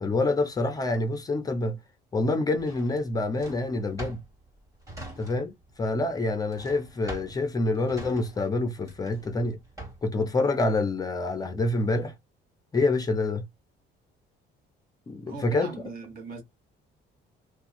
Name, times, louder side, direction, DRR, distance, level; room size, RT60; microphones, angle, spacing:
voice 1, 0.0-1.8 2.1-4.2 5.2-9.6 10.0-12.1 12.7-13.4 15.1-15.7, left 2 dB, 20° left, 0.5 m, -27 dB
Drawer open or close, 2.6-5.7 5.9-10.2, right 2 dB, 15° right, 1.5 m, -43 dB
voice 2, 15.3-16.4, right 4 dB, 50° right, 1.3 m, -39 dB
2.8 x 2.2 x 4.0 m
cardioid pair, 175°, 19 cm